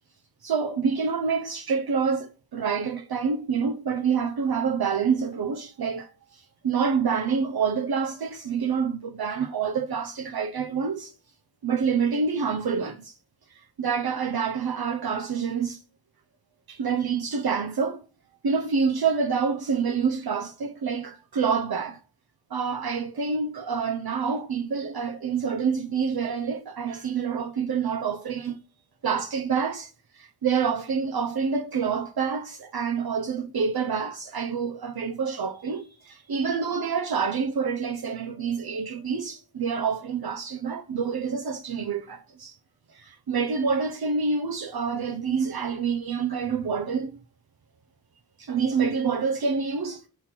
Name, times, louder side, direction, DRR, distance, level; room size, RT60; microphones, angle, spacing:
voice 1, 0.4-11.1 11.6-13.2 13.5-15.8 16.7-18.0 18.4-22.0 22.5-28.6 29.0-42.6 42.9-47.2 48.4-50.1, right 6 dB, 75° right, 0.7 m, -27 dB
5.6 x 4.4 x 5.9 m
wide cardioid pair, 80°, 38 cm